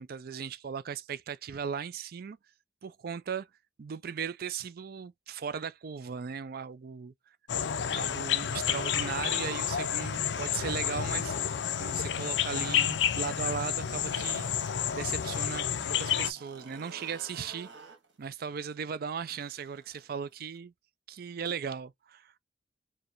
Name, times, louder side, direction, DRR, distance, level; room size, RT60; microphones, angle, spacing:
voice 1, 0.0-2.4 2.8-3.5 3.8-7.1 7.7-11.4 11.8-14.5 14.9-17.7 18.2-20.7 21.1-22.3, right 6 dB, 55° right, 0.4 m, -37 dB
sound 1, 7.5-16.3, left 9 dB, 70° left, 0.4 m, -30 dB
sound 2, 13.7-15.5 15.8-20.6, right 4 dB, 80° right, 1.6 m, -52 dB
4.6 x 2.2 x 3.0 m
head